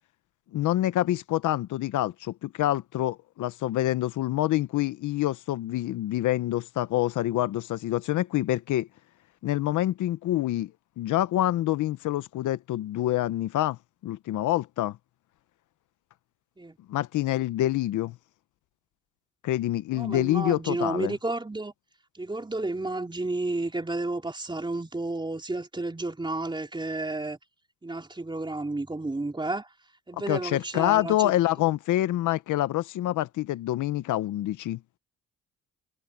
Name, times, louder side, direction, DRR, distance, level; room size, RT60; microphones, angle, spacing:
voice 1, 0.5-8.9 9.4-10.7 11.0-13.8 14.0-15.0 16.9-18.1 19.4-21.1 30.3-34.8, left 14 dB, 80° left, 0.9 m, -26 dB
voice 2, 19.9-21.7 22.1-27.4 27.8-29.7 30.1-31.3, right 2 dB, 15° right, 4.2 m, -31 dB
cardioid pair, 90°, 30 cm